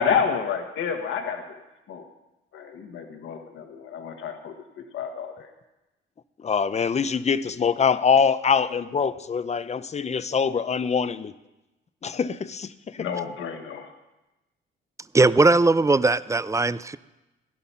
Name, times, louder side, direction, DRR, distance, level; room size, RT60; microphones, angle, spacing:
voice 1, 0.0-1.6 1.9-2.0 2.5-5.5 13.0-13.9, left 6 dB, 75° left, 1.6 m, -29 dB
voice 2, 6.4-11.3 12.0-13.1, left 6 dB, 35° left, 0.7 m, -24 dB
voice 3, 15.1-17.0, right 3 dB, 15° right, 0.5 m, -19 dB
17.0 x 11.0 x 5.7 m
cardioid pair, 90°, 20 cm